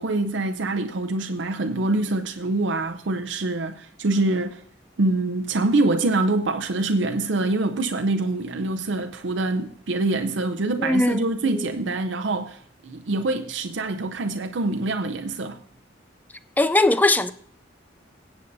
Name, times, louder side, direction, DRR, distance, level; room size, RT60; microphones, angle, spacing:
voice 1, 0.0-4.6 5.0-15.6, right 2 dB, 80° right, 0.6 m, -25 dB
voice 2, 10.8-11.2 16.6-17.3, left 2 dB, 10° left, 0.3 m, -19 dB
23.5 x 8.1 x 2.7 m
head